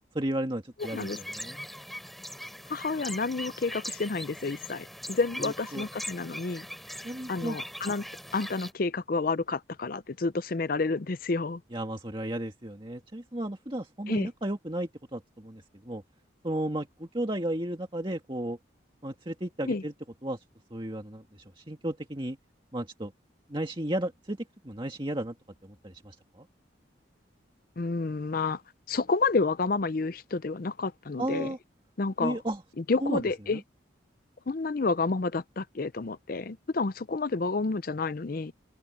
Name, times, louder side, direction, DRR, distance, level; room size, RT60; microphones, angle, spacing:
voice 1, 0.1-1.6 5.4-5.8 7.0-7.6 11.7-16.0 16.4-18.6 19.0-19.9 20.2-20.4 20.7-22.4 22.7-23.1 23.5-24.4 24.6-25.4 25.6-26.5 31.2-31.6 32.2-32.6 33.0-33.2 33.5-33.6, right 1 dB, 25° right, 1.9 m, -34 dB
sound 1, 0.8-8.7, equal, ahead, 4.6 m, -41 dB
voice 2, 2.7-6.7 7.3-8.0 8.3-11.6 14.1-14.3 19.7-19.8 27.8-28.6 28.9-31.5 32.0-32.4 32.9-33.6 34.5-38.5, left 3 dB, 45° left, 0.5 m, -29 dB
open air
head